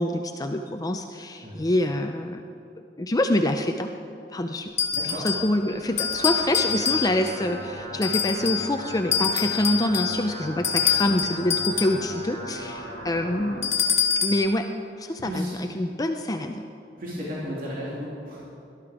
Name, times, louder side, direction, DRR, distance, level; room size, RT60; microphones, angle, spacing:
voice 1, 0.0-2.4 3.0-3.9 4.3-4.7 5.0-13.7 14.2-14.7 15.0-16.6, left 1 dB, 20° left, 5 dB, 0.5 m, -26 dB
sound 1, 4.8-5.5 6.0-7.4 8.0-8.7 9.1-12.0 13.6-14.5, left 7 dB, 40° left, 1.5 m, -26 dB
voice 2, 4.9-5.3 15.2-15.6 17.0-18.4, equal, 50° right, -6 dB, 2.6 m, -33 dB
sound 2, 5.7-13.7, equal, 70° right, 3.5 m, -38 dB
18.0 x 12.0 x 4.9 m, 2.7 s
head